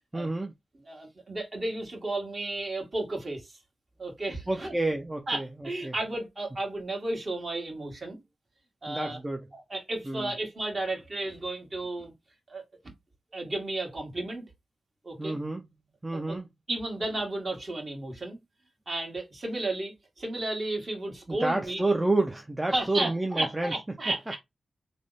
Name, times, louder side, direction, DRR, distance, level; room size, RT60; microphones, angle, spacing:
voice 1, 0.1-0.5 4.5-5.9 8.9-9.5 10.0-10.3 15.2-15.6 16.0-16.5 21.3-23.7 24.1-24.2, right 2 dB, 15° right, 0.5 m, -29 dB
voice 2, 0.9-3.5 4.0-4.7 5.3-8.2 8.8-9.2 9.5-12.1 12.5-12.6 13.3-14.5 15.0-15.4 16.1-16.4 16.7-18.4 18.9-21.8 22.7-24.4, right 2 dB, 40° right, 1.6 m, -33 dB
3.3 x 2.1 x 3.9 m
cardioid pair, 80°, 0 cm